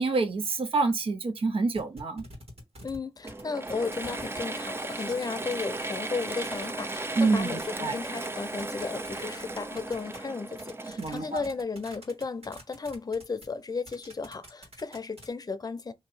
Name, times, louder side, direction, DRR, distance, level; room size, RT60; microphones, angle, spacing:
voice 1, 0.0-2.2 7.2-8.0 11.0-11.4, right 3 dB, 70° right, 0.6 m, -27 dB
sound 1, 1.7-3.4 3.7-8.3 8.6-15.3, right 2 dB, 85° right, 1.7 m, -49 dB
voice 2, 2.8-15.9, left 4 dB, 40° left, 0.5 m, -34 dB
Mechanisms / Drill, 3.2-11.8, right 2 dB, 25° right, 0.4 m, -36 dB
2.8 x 2.6 x 4.0 m
wide cardioid pair, 120°, 10 cm